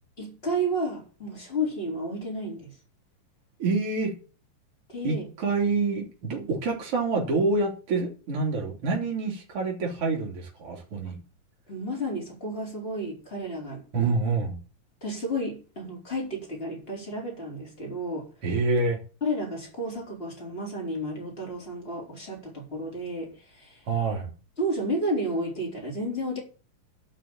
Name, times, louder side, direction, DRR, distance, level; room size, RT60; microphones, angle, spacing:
voice 1, 0.2-2.7 4.9-5.2 6.3-6.5 11.0-11.1 11.7-14.1 15.0-18.3 19.2-23.8 24.6-26.4, equal, 15° left, 4.2 m, -32 dB
voice 2, 3.6-4.2 5.0-11.2 13.9-14.6 18.4-19.0 23.9-24.3, right 3 dB, 45° right, 3.8 m, -27 dB
12.0 x 6.0 x 8.7 m
omnidirectional pair, 3.8 m